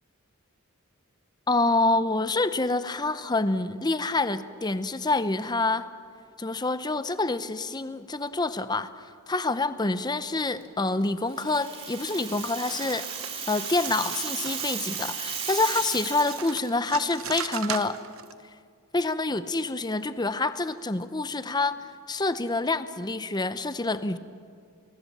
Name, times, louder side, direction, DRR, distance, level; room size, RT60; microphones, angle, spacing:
voice 1, 1.5-5.9 6.4-8.9 9.3-13.0 13.5-18.0 18.9-24.2, left 2 dB, 20° left, 12 dB, 0.8 m, -27 dB
Rattle (instrument), 11.3-16.5, right 6 dB, 25° right, 2.6 m, -35 dB
sound 1, 12.4-18.3, right 8 dB, 65° right, 1.1 m, -39 dB
29.5 x 20.5 x 7.3 m, 2.2 s
head